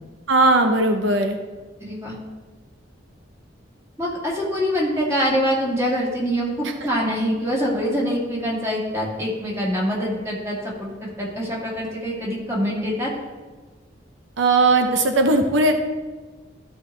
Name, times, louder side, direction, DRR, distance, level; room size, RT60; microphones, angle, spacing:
voice 1, 0.3-1.4 14.4-15.7, right 2 dB, 90° right, 5 dB, 0.7 m, -18 dB
voice 2, 1.8-2.1 4.0-13.1, equal, 15° right, -4 dB, 2.2 m, -24 dB
13.0 x 5.6 x 3.3 m, 1.3 s
head